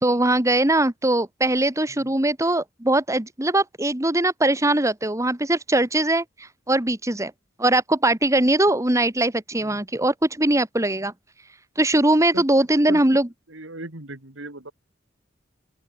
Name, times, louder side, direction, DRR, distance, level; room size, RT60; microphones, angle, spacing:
voice 1, 0.0-7.3 7.6-11.1 11.8-13.3, right 1 dB, 15° right, 1.7 m, -21 dB
voice 2, 13.5-14.7, right 2 dB, 85° right, 3.8 m, -37 dB
open air
head